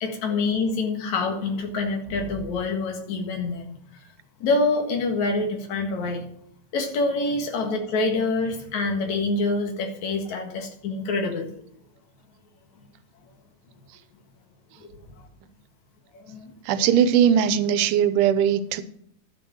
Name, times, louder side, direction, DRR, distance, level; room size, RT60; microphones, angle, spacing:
voice 1, 0.0-3.8 4.4-6.2 6.7-11.5 14.8-14.9 15.2-15.3 16.1-16.5, left 3 dB, 65° left, 4 dB, 2.9 m, -26 dB
voice 2, 16.7-18.8, right 8 dB, 85° right, 12 dB, 2.4 m, -20 dB
11.5 x 6.2 x 7.2 m, 0.69 s
omnidirectional pair, 3.6 m